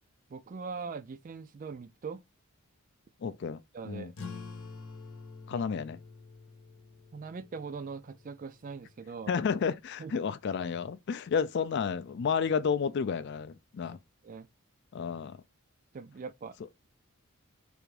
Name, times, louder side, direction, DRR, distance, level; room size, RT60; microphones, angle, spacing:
voice 1, 0.3-2.2 3.7-4.1 5.5-5.6 7.1-9.3 10.0-10.2 14.2-14.5 15.9-16.6, right 5 dB, 40° right, 0.3 m, -41 dB
voice 2, 3.2-4.1 5.5-6.0 9.3-14.0 14.9-15.4, left 6 dB, 50° left, 0.4 m, -31 dB
sound 1, 4.1-9.2, left 4 dB, 80° left, 0.8 m, -48 dB
3.4 x 2.5 x 3.2 m
head